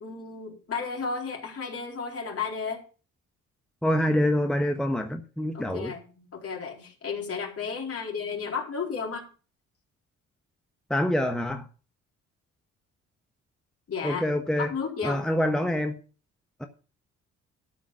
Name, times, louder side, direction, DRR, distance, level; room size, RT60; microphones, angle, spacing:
voice 1, 0.0-2.8 5.5-9.2 13.9-14.2 14.6-15.2, left 5 dB, 50° left, 4.1 m, -33 dB
voice 2, 3.8-5.9 10.9-11.7 14.0-14.7 15.0-16.0 16.6-16.7, left 1 dB, ahead, 1.3 m, -26 dB
13.0 x 5.1 x 7.6 m
cardioid pair, 90°, 30 cm